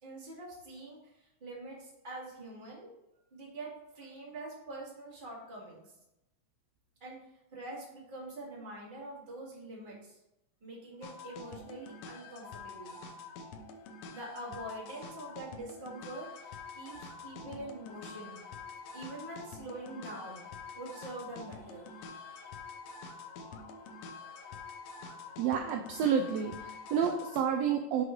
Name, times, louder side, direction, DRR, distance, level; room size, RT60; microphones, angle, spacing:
voice 1, 0.0-2.9 3.3-5.9 7.0-7.2 7.5-10.2 10.6-12.9 14.1-18.4 18.9-20.4 20.7-22.5, right 2 dB, 20° right, -5 dB, 1.8 m, -45 dB
sound 1, 11.0-27.4, left 4 dB, 70° left, 1.7 m, -47 dB
voice 2, 25.4-28.0, right 7 dB, 75° right, 4 dB, 1.6 m, -30 dB
6.1 x 4.8 x 4.5 m, 0.90 s
omnidirectional pair, 3.3 m